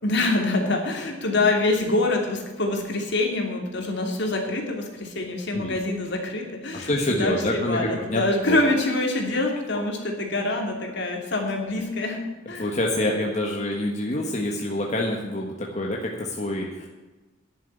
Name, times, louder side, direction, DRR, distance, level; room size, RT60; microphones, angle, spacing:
voice 1, 0.0-12.7, left 2 dB, 60° left, 2 dB, 2.7 m, -25 dB
voice 2, 6.7-8.6 12.6-16.9, left 1 dB, 35° left, -1 dB, 1.5 m, -27 dB
11.0 x 7.4 x 9.2 m, 1.2 s
head